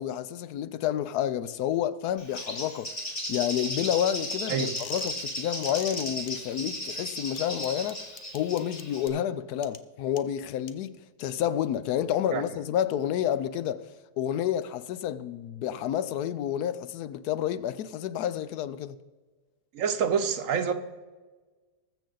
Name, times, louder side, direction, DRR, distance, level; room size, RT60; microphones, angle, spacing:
voice 1, 0.0-2.9 3.3-13.9 14.2-19.0, left 10 dB, 80° left, 1.1 m, -29 dB
Bird, 2.2-9.1, left 1 dB, 35° left, 2.5 m, -36 dB
voice 2, 4.5-4.8 12.3-12.4 19.7-20.7, right 7 dB, 60° right, 1.0 m, -27 dB
sound 1, 4.8-5.2 5.6-6.3 7.4-9.1 9.6-9.8 10.2-10.3 10.7-10.8, left 7 dB, 60° left, 0.5 m, -42 dB
20.5 x 7.1 x 3.9 m
omnidirectional pair, 1.7 m